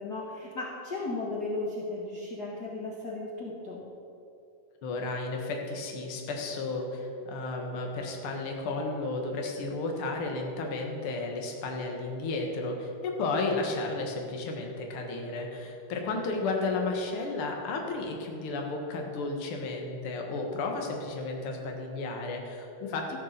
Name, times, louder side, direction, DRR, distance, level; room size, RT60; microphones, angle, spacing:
voice 1, 0.0-3.8 16.1-16.5 23.1-23.2, left 2 dB, 65° left, -3 dB, 0.9 m, -36 dB
voice 2, 4.8-23.2, left 3 dB, 50° left, 1 dB, 1.9 m, -33 dB
14.5 x 7.3 x 6.7 m, 2.7 s
omnidirectional pair, 4.0 m